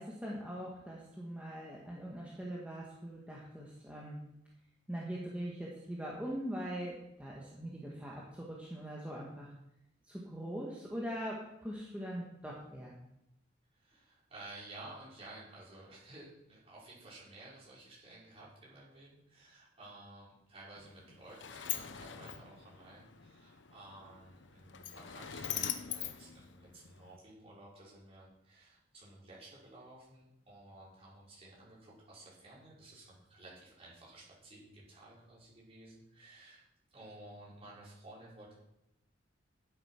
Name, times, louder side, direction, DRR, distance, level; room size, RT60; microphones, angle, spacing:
voice 1, 0.0-4.2 4.9-9.5 10.0-13.0, equal, 5° right, -4 dB, 1.6 m, -42 dB
voice 2, 13.7-38.5, right 2 dB, 30° right, -7 dB, 5.5 m, -54 dB
Sliding door, 20.8-27.2, left 10 dB, 70° left, 0.8 m, -43 dB
12.0 x 8.3 x 5.9 m, 0.85 s
head